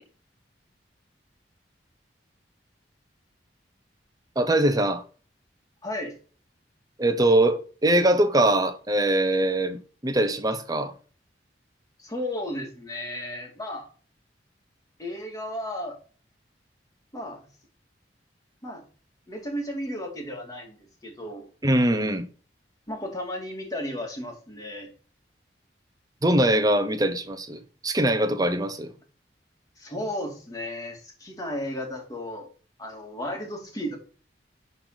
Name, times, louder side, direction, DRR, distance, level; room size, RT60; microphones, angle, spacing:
voice 1, 4.4-5.0 7.0-10.9 21.6-22.2 26.2-28.9, right 1 dB, 20° right, 0.9 m, -22 dB
voice 2, 5.8-6.2 12.0-13.9 15.0-16.0 17.1-17.4 18.6-18.8 19.3-20.8 21.0-21.5 22.9-24.9 29.8-32.5 32.8-34.0, left 1 dB, 20° left, 2.4 m, -34 dB
11.0 x 4.1 x 4.0 m
head